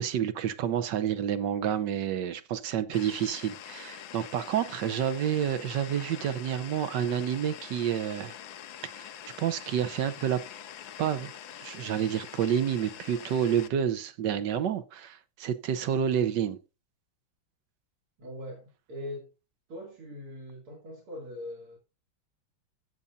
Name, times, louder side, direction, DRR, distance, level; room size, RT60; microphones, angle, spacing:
voice 1, 0.0-8.3 9.0-9.1 9.4-10.4 11.0-11.3 11.6-14.8 15.1-16.6, right 9 dB, 65° right, 1.2 m, -29 dB
sound 1, 2.9-13.7, left 9 dB, 70° left, 1.5 m, -45 dB
voice 2, 18.2-19.3 19.7-21.8, left 1 dB, 85° right, 3.5 m, -41 dB
16.0 x 6.8 x 2.6 m
omnidirectional pair, 2.3 m